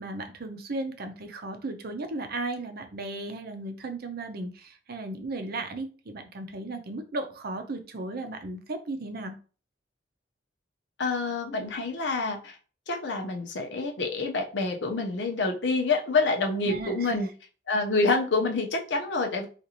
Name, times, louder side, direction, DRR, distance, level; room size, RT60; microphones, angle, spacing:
voice 1, 0.0-9.3 16.7-17.2, right 2 dB, 55° right, 7 dB, 0.6 m, -35 dB
voice 2, 11.0-12.6 12.9-17.3 17.7-19.5, left 3 dB, 70° left, 3 dB, 0.7 m, -27 dB
3.9 x 2.5 x 2.9 m, 0.37 s
head